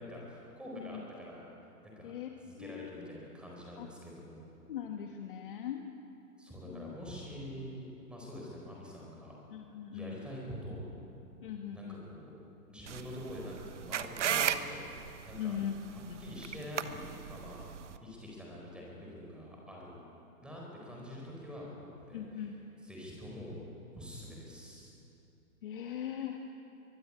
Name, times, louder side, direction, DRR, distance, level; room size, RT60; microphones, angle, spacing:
voice 1, 0.0-1.4 1.8-2.1 2.4-4.4 6.4-9.3 9.9-10.8 11.7-12.3 12.7-15.0 15.2-15.6 15.9-20.0 20.4-22.2 22.8-23.5 23.9-24.9, left 1 dB, ahead, -3 dB, 4.3 m, -46 dB
voice 2, 2.6-2.9 3.8-3.9 4.7-5.8 6.6-6.9 9.5-10.2 11.4-12.0 15.4-16.2 22.1-22.5 25.6-26.4, left 9 dB, 35° left, 3 dB, 1.4 m, -40 dB
sound 1, 12.9-18.0, right 9 dB, 50° right, 1.2 m, -36 dB
23.5 x 21.0 x 8.7 m, 2.8 s
hypercardioid pair, 160°, 47 cm